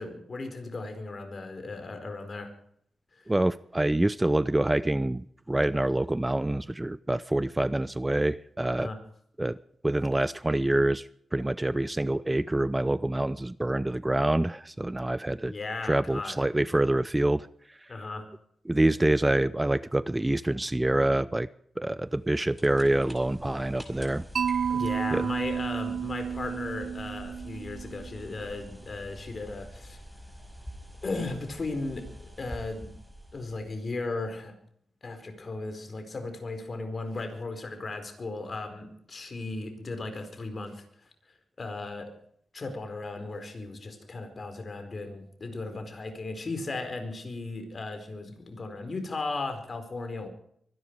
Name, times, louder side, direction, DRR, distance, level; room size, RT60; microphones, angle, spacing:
voice 1, 0.0-2.5 3.2-3.3 8.8-9.0 15.4-16.4 17.9-18.3 24.7-30.0 31.0-32.9 33.3-34.5 35.0-40.8 41.6-42.1 42.5-50.3, left 3 dB, 45° left, 7 dB, 4.5 m, -36 dB
voice 2, 3.3-8.9 9.4-9.6 9.8-11.0 11.3-15.5 15.8-17.5 18.7-21.5 21.8-24.2 25.1-25.3, right 1 dB, 15° right, 18 dB, 0.5 m, -26 dB
sound 1, 22.1-33.9, equal, 5° left, 5.1 m, -46 dB
Mallet percussion, 24.4-28.4, right 7 dB, 70° right, 0.5 m, -31 dB
24.0 x 11.0 x 4.8 m, 0.68 s
cardioid pair, 60°, 0 cm